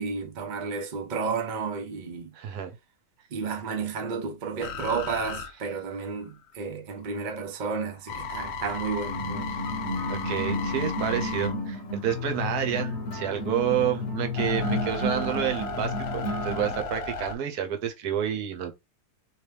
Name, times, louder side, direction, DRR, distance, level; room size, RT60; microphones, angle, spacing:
voice 1, 0.0-2.3 3.3-9.5, right 5 dB, 55° right, 0.5 m, -32 dB
voice 2, 2.3-2.7 9.5-9.6 10.1-18.7, right 10 dB, 70° right, 1.2 m, -29 dB
sound 1, 4.6-6.5 7.0-12.6 13.1-17.3, left 4 dB, 90° left, 0.5 m, -35 dB
sound 2, 9.0-16.8, left 2 dB, 50° left, 1.1 m, -31 dB
3.2 x 3.0 x 3.3 m
omnidirectional pair, 1.8 m